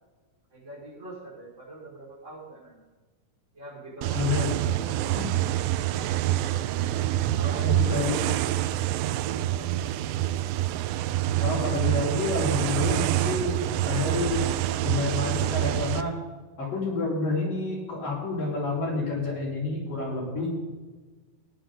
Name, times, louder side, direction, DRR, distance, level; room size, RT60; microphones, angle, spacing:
voice 1, 0.5-2.8 3.5-4.2 4.8-5.3 6.0-6.4 7.0-8.1, right 1 dB, 20° right, -6 dB, 5.5 m, -44 dB
sound 1, 4.0-16.0, right 13 dB, 80° right, 2.3 m, -26 dB
voice 2, 4.1-4.6 7.6-8.2 11.4-14.4 14.8-16.2 16.6-20.6, left 3 dB, 65° left, -5 dB, 6.3 m, -29 dB
16.0 x 11.5 x 3.8 m, 1.3 s
omnidirectional pair, 4.2 m